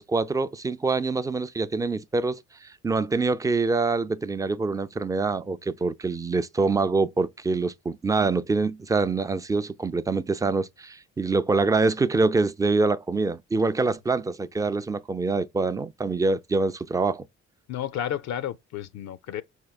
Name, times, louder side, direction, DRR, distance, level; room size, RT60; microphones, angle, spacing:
voice 1, 0.0-17.3, right 3 dB, 10° right, 0.3 m, -25 dB
voice 2, 17.7-19.4, left 10 dB, 65° left, 0.5 m, -32 dB
4.7 x 4.5 x 2.3 m
cardioid pair, 90°, 30 cm